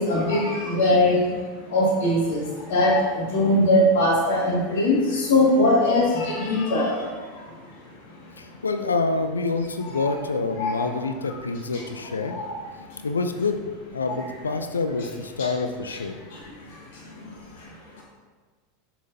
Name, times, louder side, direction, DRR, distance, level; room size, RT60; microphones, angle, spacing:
voice 1, 0.0-1.4 1.7-7.8 8.0-8.1 9.8-10.0 10.6-10.9 12.3-13.0 15.4-15.5 15.9-16.0 16.3-18.0, left 1 dB, 65° left, -5 dB, 2.0 m, -22 dB
voice 2, 8.4-12.4 13.0-16.2, left 3 dB, 85° left, 8 dB, 0.5 m, -27 dB
7.0 x 5.9 x 2.8 m, 1.4 s
figure-of-eight pair, 85°, 0 cm